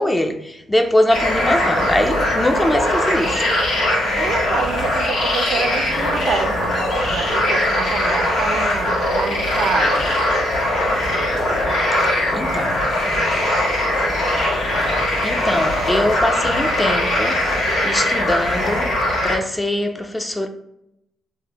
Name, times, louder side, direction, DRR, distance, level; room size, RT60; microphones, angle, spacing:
voice 1, 0.0-3.4 11.6-12.8 15.0-17.4 17.8-18.9 19.2-20.5, left 1 dB, 15° left, 0.4 m, -22 dB
sound 1, 1.1-19.4, left 1 dB, 80° left, 1.2 m, -20 dB
voice 2, 4.2-6.7 7.0-10.0, right 5 dB, 70° right, 0.4 m, -27 dB
3.5 x 2.0 x 2.9 m
cardioid pair, 90°, 0 cm